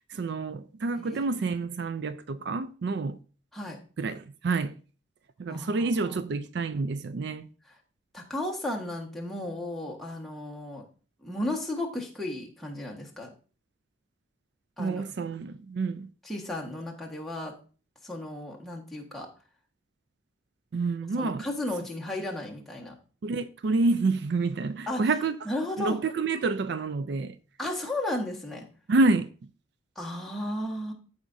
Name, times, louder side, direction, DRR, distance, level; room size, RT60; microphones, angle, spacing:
voice 1, 0.1-3.2 4.0-4.7 5.4-7.5 14.8-16.1 20.7-21.5 23.2-25.4 25.8-27.4 28.9-29.3, right 3 dB, 60° right, 0.4 m, -28 dB
voice 2, 5.5-6.2 7.6-7.8 8.1-10.9 11.2-13.3 14.8-15.0 16.2-17.5 18.0-19.3 21.2-22.9 24.9-25.1 25.4-26.0 27.6-28.7 29.9-30.9, left 1 dB, ahead, 1.4 m, -34 dB
14.5 x 4.9 x 2.6 m
head